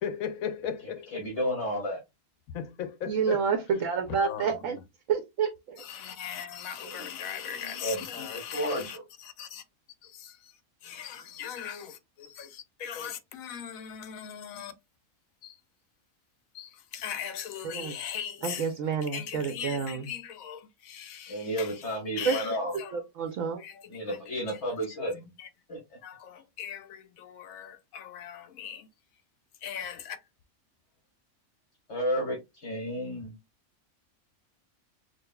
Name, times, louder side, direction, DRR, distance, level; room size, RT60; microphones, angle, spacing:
voice 1, 0.0-1.4 2.5-3.4 4.2-4.8 5.8-9.6 10.0-10.5 10.8-14.7 15.4-15.6 16.5-18.7 19.0-21.8 22.2-22.9 23.6-24.2 24.5-24.6 25.4-25.5 26.0-28.9 29.6-30.2, left 8 dB, 75° left, 1.1 m, -39 dB
voice 2, 1.1-2.0 6.8-7.0 7.6-9.0 21.3-22.7 23.9-25.3 25.7-25.8 31.9-33.3, equal, 50° left, 1.7 m, -32 dB
voice 3, 3.1-4.8 5.1-5.8 17.6-17.9 18.4-20.1 22.3-22.6 22.9-23.6, right 6 dB, 70° right, 1.0 m, -29 dB
6.3 x 2.4 x 2.2 m
omnidirectional pair, 1.5 m